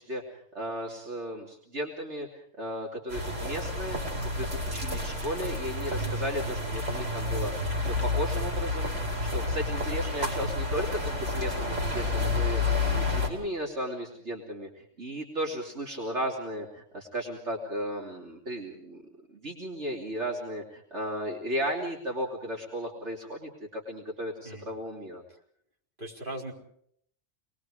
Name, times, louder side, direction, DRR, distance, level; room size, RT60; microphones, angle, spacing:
voice 1, 0.0-7.5 7.8-8.9 9.3-19.0 19.3-25.2, equal, 70° right, -2 dB, 3.3 m, -35 dB
sound 1, 3.1-13.3, left 2 dB, 85° right, 5.4 m, -30 dB
voice 2, 5.9-6.5 24.4-24.7 26.0-26.5, right 1 dB, 45° right, -2 dB, 4.7 m, -40 dB
27.5 x 21.0 x 5.0 m, 0.66 s
omnidirectional pair, 1.2 m